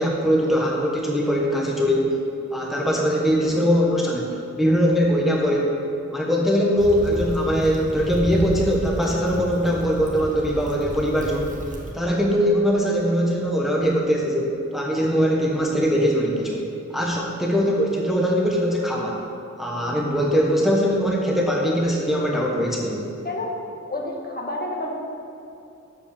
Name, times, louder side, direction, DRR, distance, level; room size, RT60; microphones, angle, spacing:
voice 1, 0.0-2.1 2.5-5.8 6.1-11.6 11.9-16.6 16.9-19.2 19.6-23.0, equal, ahead, -2 dB, 1.0 m, -21 dB
Stream / Traffic noise roadway noise / Trickle dribble, 6.8-11.9, equal, 25° right, 1.3 m, -32 dB
voice 2, 23.9-25.0, left 2 dB, 30° left, -2 dB, 1.4 m, -29 dB
7.3 x 5.0 x 7.0 m, 2.8 s
wide cardioid pair, 65°, 30 cm